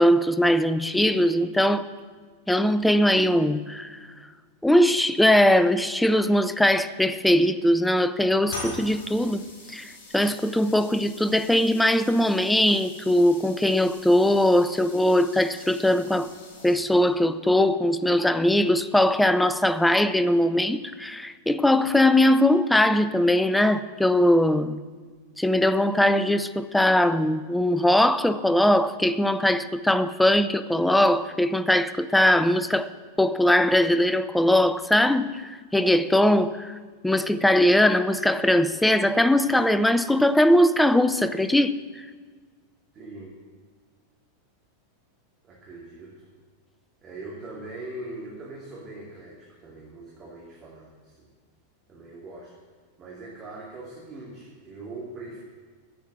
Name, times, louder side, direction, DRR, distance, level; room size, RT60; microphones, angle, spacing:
voice 1, 0.0-1.9 2.5-4.0 4.6-9.4 9.7-16.3 16.6-24.8 25.4-32.9 33.2-36.8 37.0-42.0, left 1 dB, 5° left, 0.5 m, -21 dB
sound 1, 8.5-17.1, left 2 dB, 50° left, 4.8 m, -43 dB
voice 2, 42.9-43.4 45.4-46.1 47.0-51.3 51.9-52.5 53.0-55.4, right 2 dB, 25° right, 2.6 m, -41 dB
10.5 x 8.3 x 9.0 m
figure-of-eight pair, 90°, 0 cm